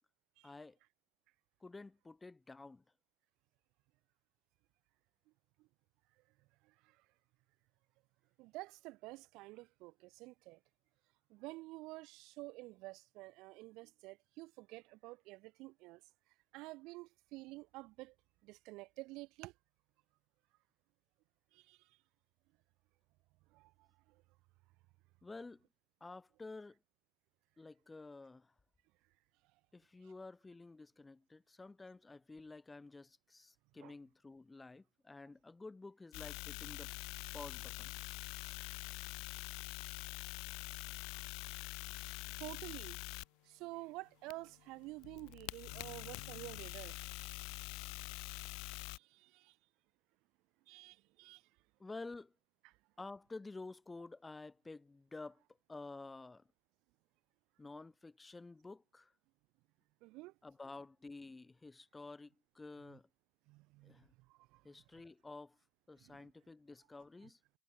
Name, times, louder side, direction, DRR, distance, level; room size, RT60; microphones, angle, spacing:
voice 1, 0.4-0.8 1.6-2.8 25.2-25.7 26.0-26.8 27.6-28.5 29.7-36.9 37.3-37.9 51.8-52.3 53.0-55.4 55.7-56.4 57.6-59.1 60.4-63.1 63.8-64.1 64.6-65.6 65.9-67.4, left 3 dB, 10° left, 0.7 m, -51 dB
voice 2, 6.6-7.0 8.4-10.6 11.3-16.0 16.5-18.1 18.4-19.5 21.5-21.9 23.5-24.2 33.8-33.9 41.1-41.2 42.0-43.0 43.4-47.0 48.9-49.6 50.7-51.4 52.6-52.7 60.0-60.3 62.9-63.0 63.5-64.0 64.3-64.6 66.0-66.3, right 21 dB, 65° right, 0.6 m, -50 dB
sound 1, 36.1-43.2 44.3-49.0, left 29 dB, 80° left, 2.2 m, -45 dB
cardioid pair, 170°, 0 cm